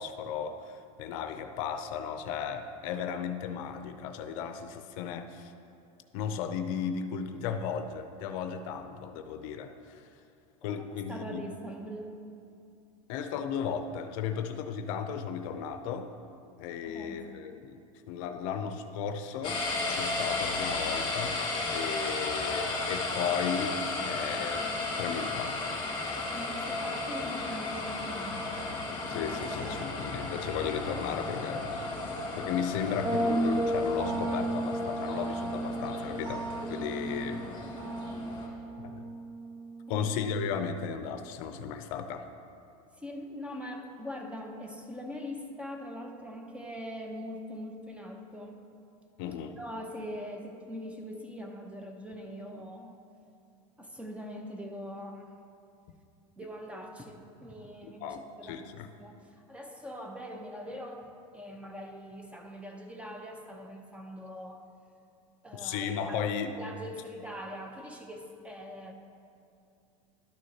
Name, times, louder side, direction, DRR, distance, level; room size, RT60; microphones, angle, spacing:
voice 1, 0.0-5.5 6.1-10.1 10.6-11.5 13.1-16.1 16.6-17.8 18.1-21.4 21.7-24.7 25.0-25.6 29.1-31.9 32.3-37.4 38.8-39.0 39.9-42.3 49.2-49.6 57.8-58.9 65.5-66.5, left 7 dB, 65° left, 8 dB, 0.6 m, -35 dB
voice 2, 10.7-12.2 16.9-17.4 26.3-28.6 29.4-29.8 39.9-40.1 43.0-48.6 49.6-53.0 53.8-55.3 56.4-64.7 65.4-66.2 66.6-68.9, equal, 5° right, 3 dB, 0.8 m, -42 dB
sound 1, 19.4-38.5, left 2 dB, 25° left, 1.8 m, -34 dB
sound 2, 33.0-40.7, right 1 dB, 40° right, 1.2 m, -33 dB
12.0 x 6.3 x 2.8 m, 2.6 s
supercardioid pair, 110°, 18 cm